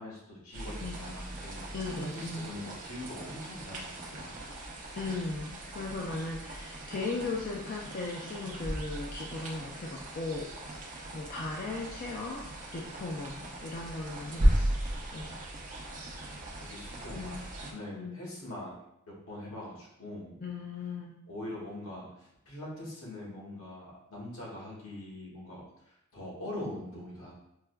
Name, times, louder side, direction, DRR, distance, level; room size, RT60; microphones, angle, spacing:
voice 1, 0.0-4.3 16.1-18.8 19.0-20.3 21.3-27.3, left 1 dB, 75° left, -4 dB, 1.1 m, -43 dB
sound 1, 0.5-17.7, right 1 dB, 35° right, 0.5 m, -36 dB
voice 2, 1.7-2.5 4.9-10.5 11.1-12.5 12.7-14.8 15.1-15.3 17.1-17.4 17.9-18.2 20.4-21.2, left 3 dB, 40° left, -2 dB, 0.3 m, -37 dB
4.5 x 2.2 x 2.2 m, 0.81 s
head